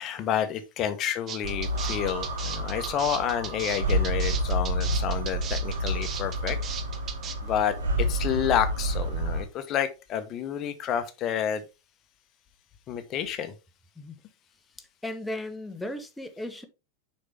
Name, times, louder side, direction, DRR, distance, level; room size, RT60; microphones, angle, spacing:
voice 1, 0.0-6.6 7.4-11.6 12.9-13.5, left 9 dB, 35° left, 1.1 m, -29 dB
sound 1, 1.3-7.3, right 7 dB, 30° right, 0.9 m, -37 dB
sound 2, 1.4-9.4, right 1 dB, 65° right, 1.6 m, -29 dB
voice 2, 15.0-16.6, left 1 dB, 5° left, 1.1 m, -36 dB
6.6 x 5.4 x 3.4 m
figure-of-eight pair, 90°, 0 cm